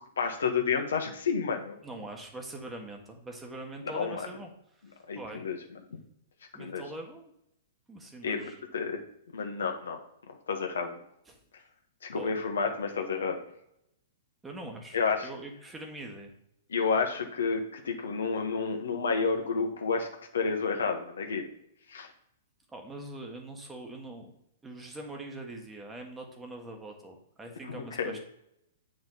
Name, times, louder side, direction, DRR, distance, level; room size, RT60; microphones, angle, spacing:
voice 1, 0.2-1.8 3.9-4.3 5.1-5.6 6.6-6.8 8.2-9.0 9.3-10.0 10.5-11.0 12.0-13.4 14.9-15.3 16.7-20.1 20.3-21.5 21.9-22.1 27.7-28.2, left 5 dB, 70° left, 4 dB, 1.4 m, -30 dB
voice 2, 1.8-4.5 4.9-5.4 6.5-7.3 7.9-8.6 11.3-11.4 12.1-12.3 14.4-16.3 22.7-24.3 24.6-28.2, right 2 dB, 10° right, 2 dB, 1.6 m, -43 dB
8.2 x 5.2 x 4.0 m, 0.78 s
figure-of-eight pair, 110°, 0 cm